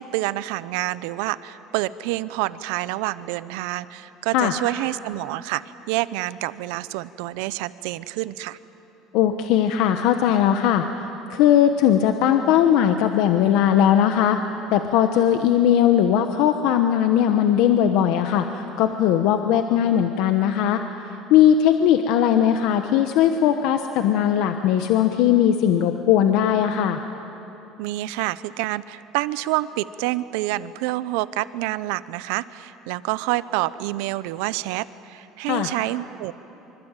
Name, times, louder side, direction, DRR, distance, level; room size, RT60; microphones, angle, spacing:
voice 1, 0.0-8.6 27.8-36.3, right 17 dB, 85° right, 16 dB, 0.7 m, -28 dB
voice 2, 9.1-10.9 11.3-14.4 14.7-20.8 21.3-27.0 35.5-35.7, left 10 dB, 60° left, 7 dB, 1.0 m, -19 dB
25.0 x 25.0 x 9.1 m, 2.9 s
cardioid pair, 175°, 0 cm